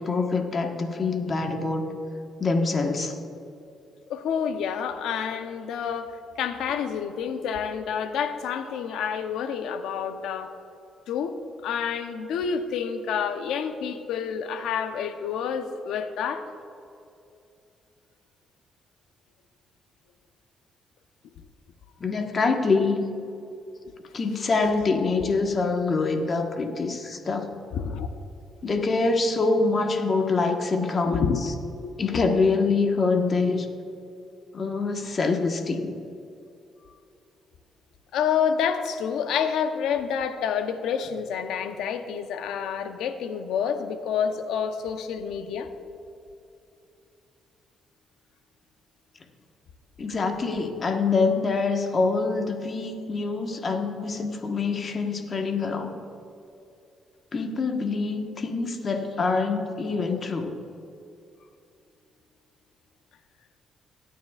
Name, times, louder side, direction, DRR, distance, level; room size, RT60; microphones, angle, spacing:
voice 1, 0.0-2.0 2.4-3.1 22.0-23.0 24.1-27.6 28.6-31.5 32.0-33.7 34.5-36.0 50.0-56.0 57.3-60.6, left 4 dB, 40° left, 4 dB, 1.3 m, -25 dB
voice 2, 4.1-6.1 6.4-10.5 11.1-11.4 11.6-16.4 25.2-25.3 27.7-28.1 31.0-31.4 38.1-45.7, left 7 dB, 85° left, 8 dB, 0.8 m, -28 dB
22.0 x 9.2 x 2.4 m, 2.6 s
cardioid pair, 90°, 0 cm